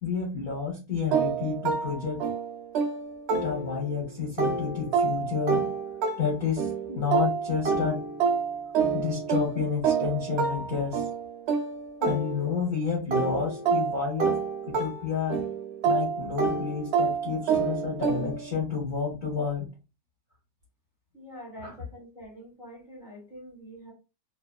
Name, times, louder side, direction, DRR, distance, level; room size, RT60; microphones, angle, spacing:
voice 1, 0.0-2.2 3.4-5.7 6.2-8.0 8.9-11.1 12.0-15.4 15.8-19.7 21.6-21.7, left 5 dB, 40° left, -3 dB, 0.7 m, -30 dB
sound 1, 1.1-4.0 4.4-12.7 13.1-18.5, right 5 dB, 85° right, 0.5 m, -28 dB
voice 2, 21.1-23.9, equal, ahead, -3 dB, 0.9 m, -45 dB
2.8 x 2.2 x 2.3 m, 0.29 s
omnidirectional pair, 1.7 m